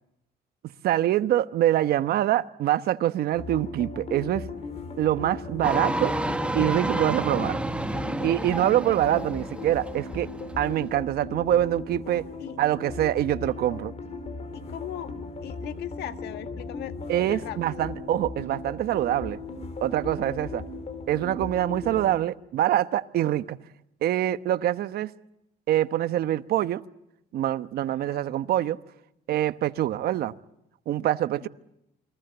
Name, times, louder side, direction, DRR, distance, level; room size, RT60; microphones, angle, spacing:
voice 1, 0.8-4.5 5.0-6.1 6.5-7.6 8.2-10.3 10.6-12.2 12.6-13.9 17.1-19.4 19.8-20.6 21.1-23.6 24.0-25.1 25.7-26.8 27.3-28.8 29.3-30.3 30.9-31.5, right 12 dB, 65° right, 1.1 m, -25 dB
sound 1, 3.3-22.2, left 3 dB, 40° left, 4.6 m, -37 dB
sound 2, 5.6-10.9, right 1 dB, 5° right, 1.3 m, -30 dB
voice 2, 14.5-15.1 15.4-17.9 20.2-20.6 27.8-28.2 31.4-31.5, left 11 dB, 75° left, 1.6 m, -39 dB
28.5 x 22.5 x 7.9 m
cardioid pair, 110°, 17 cm